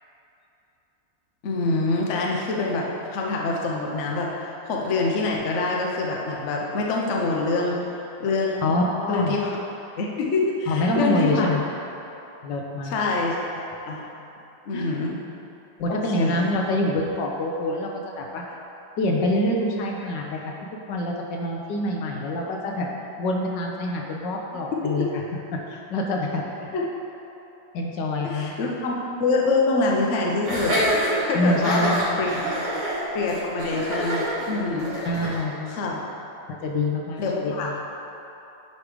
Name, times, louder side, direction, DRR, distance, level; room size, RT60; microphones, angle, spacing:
voice 1, 1.4-7.8 8.2-8.7 9.1-9.5 10.0-11.5 12.8-14.0 14.6-15.2 15.9-16.5 26.7-26.8 28.2-28.9 29.2-30.8 31.2-32.3 33.1-34.9 35.7-36.0 37.2-37.7, left 3 dB, 50° left, -2 dB, 0.9 m, -25 dB
voice 2, 8.6-9.3 10.7-11.6 12.4-13.0 14.7-14.9 15.8-17.9 18.2-18.6 19.0-20.5 20.9-22.9 23.2-25.1 25.5-26.4 27.7-28.7 31.3-32.8 35.0-35.8 36.5-37.7, left 1 dB, 75° left, 0 dB, 1.4 m, -26 dB
Laughter, 30.4-35.4, right 1 dB, 40° right, 1.8 m, -26 dB
9.6 x 3.2 x 5.0 m, 3.0 s
omnidirectional pair, 2.0 m